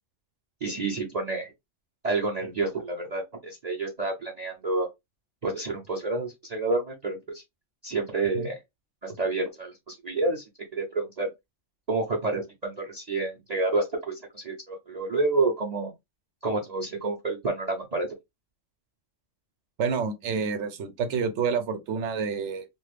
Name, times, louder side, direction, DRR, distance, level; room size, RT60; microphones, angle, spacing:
voice 1, 0.6-1.5 2.0-4.9 5.4-7.4 7.8-8.6 9.0-10.4 10.7-11.3 11.9-15.9 16.4-18.1, right 3 dB, 40° right, 0.7 m, -29 dB
voice 2, 19.8-22.7, right 5 dB, 70° right, 0.9 m, -28 dB
2.5 x 2.4 x 3.2 m
omnidirectional pair, 1.3 m